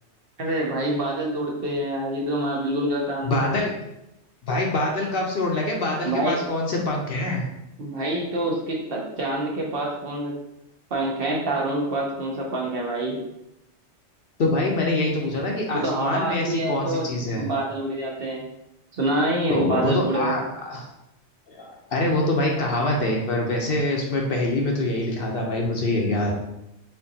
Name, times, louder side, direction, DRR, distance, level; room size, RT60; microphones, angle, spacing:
voice 1, 0.4-3.6 6.0-6.4 7.8-10.4 10.9-13.2 15.7-17.1 17.3-18.5 18.9-20.4, right 1 dB, 55° right, -2 dB, 1.0 m, -26 dB
voice 2, 3.2-3.7 4.4-7.5 14.4-17.4 19.5-20.9 21.5-26.3, left 2 dB, 55° left, 0 dB, 0.8 m, -25 dB
4.3 x 3.8 x 2.7 m, 0.86 s
omnidirectional pair, 1.2 m